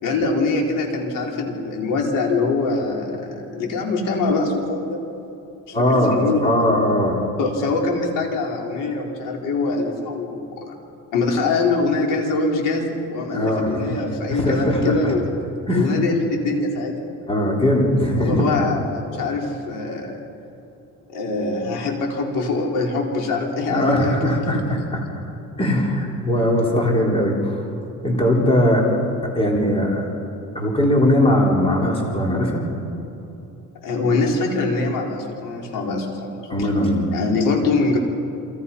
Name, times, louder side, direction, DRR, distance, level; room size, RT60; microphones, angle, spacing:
voice 1, 0.0-5.0 5.7-6.4 7.4-10.7 11.1-15.2 15.7-16.9 18.2-20.2 21.1-24.7 33.8-36.7 37.1-38.0, left 3 dB, 70° left, 0 dB, 4.9 m, -23 dB
voice 2, 5.7-7.2 13.3-14.0 14.3-15.1 15.7-15.9 17.3-18.4 23.7-25.0 25.6-27.6 28.0-28.9 29.3-30.1 30.5-32.6 36.5-37.1, left 1 dB, 15° left, -1 dB, 4.1 m, -20 dB
29.5 x 27.5 x 5.7 m, 3.0 s
cardioid pair, 170°, 33 cm